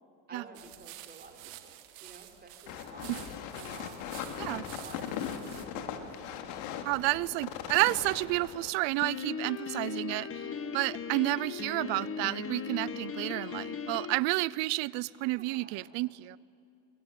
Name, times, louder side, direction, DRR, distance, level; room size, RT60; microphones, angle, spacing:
voice 1, 0.3-5.2 5.6-6.5 15.2-15.9, right 3 dB, 20° right, 4.0 m, -51 dB
sound 1, 0.5-5.7, right 15 dB, 90° right, 1.8 m, -50 dB
sound 2, 2.7-8.7, left 8 dB, 75° left, 2.5 m, -39 dB
voice 2, 6.8-10.4 10.7-16.4, right 21 dB, 70° right, 0.7 m, -30 dB
Piano, 9.0-14.2, left 6 dB, 30° left, 1.3 m, -38 dB
23.5 x 23.0 x 9.2 m
cardioid pair, 120°, 46 cm